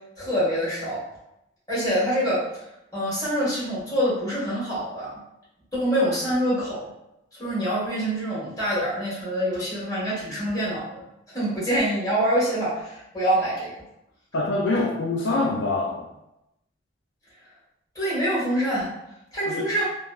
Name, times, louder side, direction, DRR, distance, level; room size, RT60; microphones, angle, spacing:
voice 1, 0.2-1.0 1.7-2.4 2.9-5.2 5.7-6.9 7.3-11.0 11.3-13.7 17.9-18.9 19.3-19.8, equal, 20° left, -9 dB, 1.4 m, -25 dB
voice 2, 14.3-16.1 19.5-19.7, left 2 dB, 70° left, -1 dB, 0.4 m, -25 dB
3.0 x 2.1 x 2.3 m, 0.85 s
head